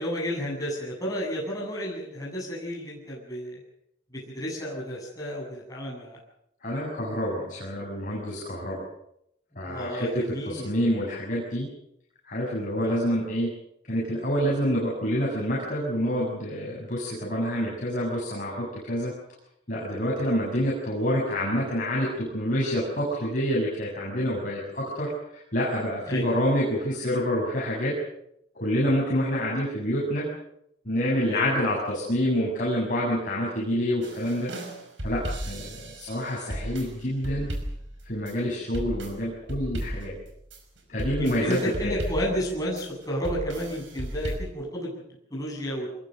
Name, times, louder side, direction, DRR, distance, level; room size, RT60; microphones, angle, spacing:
voice 1, 0.0-3.6 4.1-6.2 9.6-10.7 12.8-13.0 26.0-26.3 31.2-31.5 41.2-44.9 45.3-45.9, equal, 20° left, -3 dB, 7.8 m, -31 dB
voice 2, 6.6-8.8 9.6-10.1 10.5-11.7 12.2-13.5 13.9-19.1 19.7-28.0 28.6-30.3 30.8-34.5 35.0-37.5 38.0-40.2 40.9-41.9, equal, 45° left, -4 dB, 7.4 m, -27 dB
sound 1, 34.0-44.4, right 1 dB, 90° right, 5.6 m, -35 dB
25.5 x 22.0 x 6.5 m, 0.77 s
head